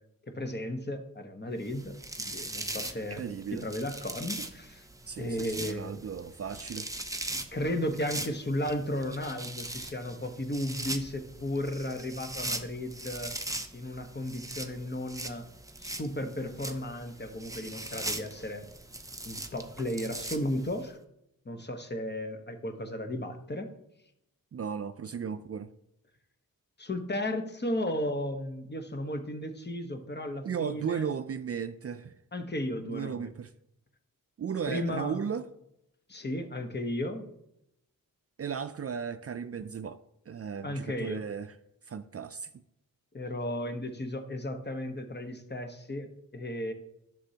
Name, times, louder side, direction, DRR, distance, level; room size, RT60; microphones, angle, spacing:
voice 1, 0.3-4.8 5.2-6.0 7.5-13.3 13.7-15.4 15.8-18.7 19.2-21.0 21.4-23.7 26.8-31.1 32.3-33.3 34.7-35.2 36.1-37.3 40.6-41.2 43.1-46.7, left 1 dB, 30° left, 1.1 m, -34 dB
sound 1, 1.7-20.8, right 2 dB, 10° right, 0.7 m, -40 dB
voice 2, 3.1-3.6 5.1-6.9 24.5-25.7 30.4-32.2 32.9-33.5 34.4-35.5 38.4-40.0 40.3-41.6 41.9-42.5, right 7 dB, 45° right, 0.4 m, -35 dB
11.5 x 6.9 x 2.8 m
cardioid pair, 70°, 34 cm